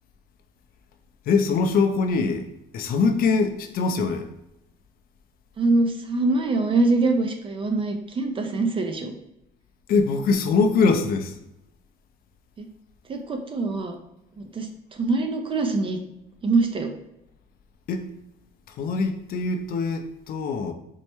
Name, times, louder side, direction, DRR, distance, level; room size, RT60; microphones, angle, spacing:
voice 1, 1.3-2.5 2.7-4.3 9.9-11.4 17.9-18.1 18.7-20.7, left 4 dB, 60° left, 6 dB, 0.4 m, -23 dB
voice 2, 5.6-9.1 12.6-12.7 13.1-14.0 14.5-16.0 16.4-16.9, right 3 dB, 30° right, 5 dB, 0.5 m, -24 dB
4.4 x 2.1 x 2.9 m, 0.87 s
cardioid pair, 110°, 17 cm